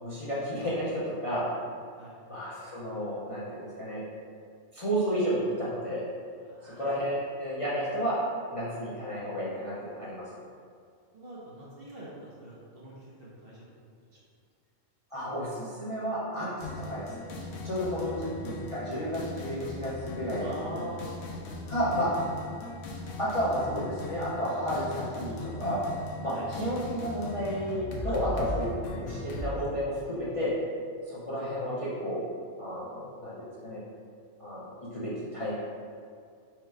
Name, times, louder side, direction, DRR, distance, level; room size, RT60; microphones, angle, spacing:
voice 1, 0.0-1.4 2.3-4.0 4.7-6.0 6.6-8.2 8.5-9.7 10.0-10.2 15.1-17.3 17.6-20.5 21.7-22.1 23.2-25.8 26.2-30.5 31.1-32.2 32.6-33.8 34.4-34.6 34.9-35.5, equal, 30° left, -9 dB, 0.7 m, -32 dB
voice 2, 6.4-6.9 11.1-13.6 17.6-18.1 20.4-21.1 21.8-22.1 26.3-26.5 28.0-28.6, right 1 dB, 50° right, -6 dB, 1.0 m, -44 dB
sound 1, 16.6-29.5, left 2 dB, 70° left, 1.0 m, -38 dB
4.7 x 2.3 x 4.6 m, 2.3 s
omnidirectional pair, 1.4 m